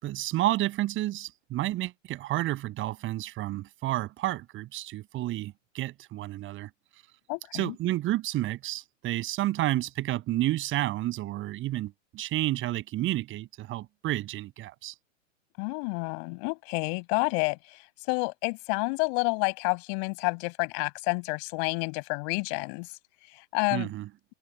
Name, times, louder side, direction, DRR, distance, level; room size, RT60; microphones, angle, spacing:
voice 1, 0.0-6.7 7.5-14.9 23.7-24.1, right 15 dB, 30° right, 6.8 m, -30 dB
voice 2, 7.3-7.7 15.6-22.9 23.2-23.9, left 40 dB or more, 45° left, 7.3 m, -29 dB
hypercardioid pair, 120°, 39 cm